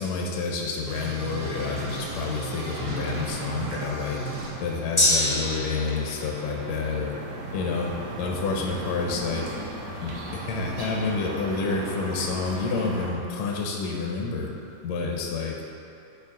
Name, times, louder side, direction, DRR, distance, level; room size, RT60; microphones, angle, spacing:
voice 1, 0.0-4.2 4.6-7.2 7.5-9.5 10.0-14.5 14.8-15.6, left 4 dB, 75° left, 0 dB, 1.9 m, -29 dB
sound 1, 0.9-4.5, right 3 dB, 80° right, 2.5 m, -35 dB
sound 2, 1.2-13.1, right 1 dB, 65° right, 1.9 m, -38 dB
Gong, 5.0-12.7 13.1-13.2, left 1 dB, 40° left, 0.4 m, -31 dB
10.0 x 4.6 x 3.7 m, 2.7 s
omnidirectional pair, 3.4 m